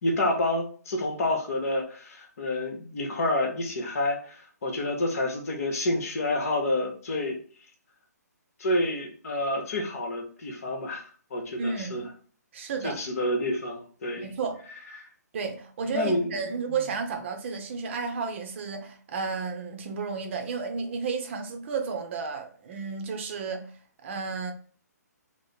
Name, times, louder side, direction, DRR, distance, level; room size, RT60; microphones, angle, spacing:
voice 1, 0.0-7.4 8.6-12.1 12.8-14.2 15.9-16.4, left 1 dB, 55° left, 0.9 m, -28 dB
voice 2, 11.6-12.1 12.5-13.0 14.2-14.6 15.3-23.7 24.0-24.5, right 5 dB, 45° right, 0.6 m, -32 dB
3.1 x 2.0 x 3.8 m
hypercardioid pair, 145°, 9 cm